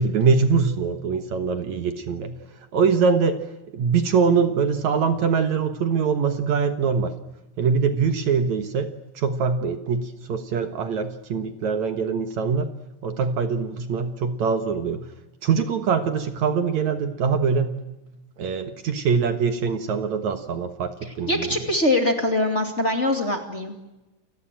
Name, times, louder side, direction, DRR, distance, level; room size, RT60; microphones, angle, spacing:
voice 1, 0.0-2.3 2.7-3.4 3.7-7.1 7.6-8.9 9.2-12.7 13.0-15.1 15.4-17.7 18.4-21.7, right 5 dB, 60° right, 8 dB, 2.5 m, -23 dB
voice 2, 21.3-23.7, left 1 dB, 20° left, 4 dB, 2.4 m, -23 dB
29.0 x 19.0 x 9.1 m, 1.0 s
omnidirectional pair, 4.0 m